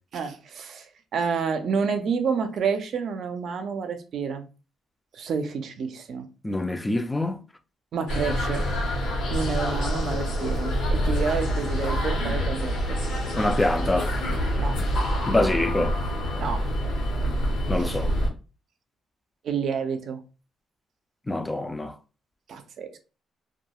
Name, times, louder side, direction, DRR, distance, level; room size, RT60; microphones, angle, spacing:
voice 1, 0.1-0.9 1.1-4.4 5.1-6.3 7.9-8.6 9.3-13.0 14.6-14.8 16.4-16.6 17.8-18.0 19.4-20.2 22.5-23.0, right 6 dB, 65° right, 0.5 m, -29 dB
voice 2, 6.4-7.4 13.4-14.1 15.3-15.9 17.7-18.1 21.3-21.9, left 2 dB, 15° left, 0.3 m, -25 dB
sound 1, 8.1-18.3, equal, 85° left, 1.0 m, -26 dB
2.3 x 2.2 x 2.8 m
cardioid pair, 90°, 0 cm